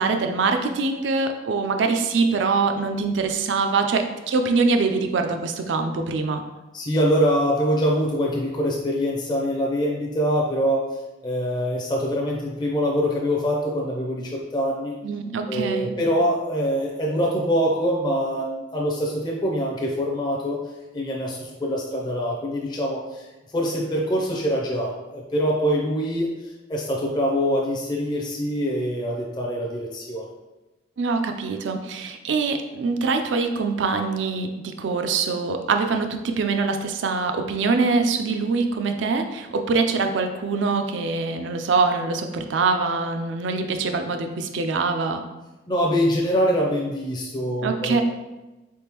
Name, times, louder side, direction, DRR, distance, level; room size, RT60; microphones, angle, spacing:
voice 1, 0.0-6.4 15.0-15.9 31.0-45.3 47.6-48.0, right 4 dB, 75° right, 6 dB, 0.4 m, -24 dB
voice 2, 6.7-10.9 11.2-14.9 15.5-20.6 20.9-23.3 23.5-30.3 45.7-48.0, equal, 25° left, -2 dB, 0.4 m, -24 dB
4.0 x 3.5 x 2.9 m, 1.1 s
head